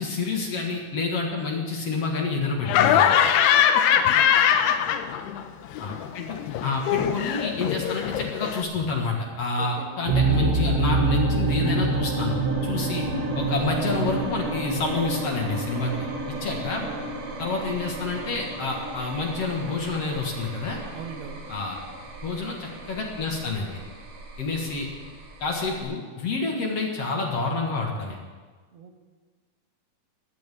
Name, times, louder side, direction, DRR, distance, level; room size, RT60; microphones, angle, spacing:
voice 1, 0.0-3.2 5.8-12.4 12.6-13.0 13.4-15.9 16.3-16.9 17.4-20.8 21.5-21.8 22.2-23.8 24.4-24.9 25.4-28.2, left 3 dB, 50° left, 0 dB, 2.4 m, -28 dB
Laughter, 2.7-5.4 5.7-8.6, left 9 dB, 85° left, 2.9 m, -22 dB
voice 2, 3.9-4.3 9.6-10.0 16.4-16.5 16.8-17.0 20.9-21.4 28.7-29.0, right 6 dB, 85° right, 4 dB, 3.6 m, -41 dB
sound 1, 10.1-25.8, right 3 dB, 50° right, 2.8 m, -28 dB
20.0 x 17.0 x 3.8 m, 1.5 s
omnidirectional pair, 4.5 m